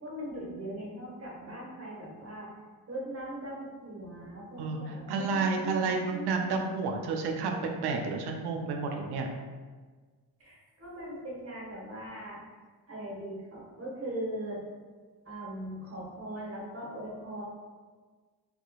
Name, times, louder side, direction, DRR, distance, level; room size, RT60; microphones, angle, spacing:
voice 1, 0.0-2.5 2.9-6.5 10.4-12.4 12.9-14.6 15.2-17.4, right 1 dB, 35° right, -5 dB, 1.1 m, -40 dB
voice 2, 4.6-9.3, right 4 dB, 70° right, 3 dB, 0.5 m, -31 dB
2.8 x 2.3 x 2.3 m, 1.4 s
supercardioid pair, 60°, 41 cm